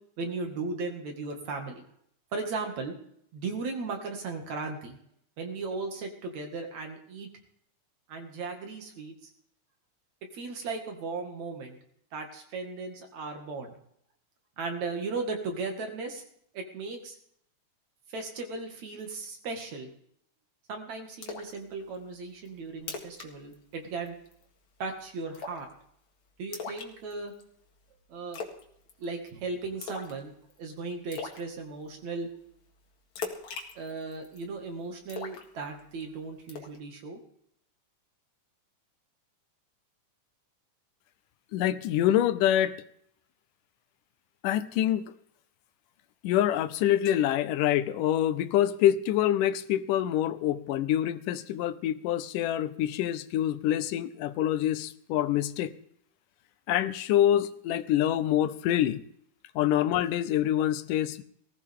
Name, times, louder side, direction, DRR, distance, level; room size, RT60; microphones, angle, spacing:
voice 1, 0.2-1.8 2.3-2.9 3.3-5.0 5.4-7.3 8.1-9.3 10.2-11.8 12.1-13.8 14.6-16.2 16.5-17.2 18.1-19.9 20.7-24.1 24.8-25.7 26.4-27.3 28.1-28.4 29.0-30.3 30.6-32.3 33.8-37.2, right 3 dB, 60° right, 3 dB, 3.3 m, -36 dB
Splash splatter, 21.2-21.6 21.9-22.0 22.5-22.6 22.8-23.3 23.5-23.7 24.1-24.4 25.3-25.7 26.5-27.4 28.3-28.6 28.9-29.3 29.8-30.2 30.5-30.6 31.1-31.4 33.2-34.4 35.1-36.0 36.5-36.8, left 5 dB, 65° left, 3.0 m, -39 dB
voice 2, 41.5-42.8 44.4-45.1 46.2-55.7 56.7-59.0 59.6-61.2, left 11 dB, 85° left, 13 dB, 2.3 m, -26 dB
19.0 x 15.5 x 3.7 m, 0.69 s
omnidirectional pair, 3.7 m